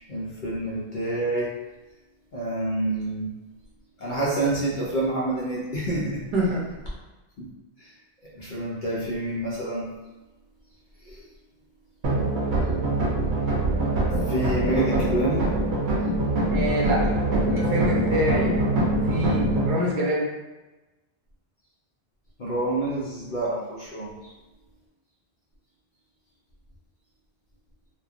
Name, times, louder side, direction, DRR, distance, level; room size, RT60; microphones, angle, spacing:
voice 1, 0.1-1.5 2.3-3.3 4.0-6.2 7.4-7.5 8.4-9.8 11.1-11.2 14.3-15.4 22.4-24.1, right 2 dB, 55° left, -7 dB, 0.7 m, -27 dB
voice 2, 6.3-6.6 16.5-18.5 19.0-20.3, equal, 55° right, -4 dB, 0.8 m, -26 dB
sound 1, 12.0-19.7, right 2 dB, 90° right, 1.0 m, -23 dB
3.1 x 2.2 x 2.4 m, 1.1 s
omnidirectional pair, 1.1 m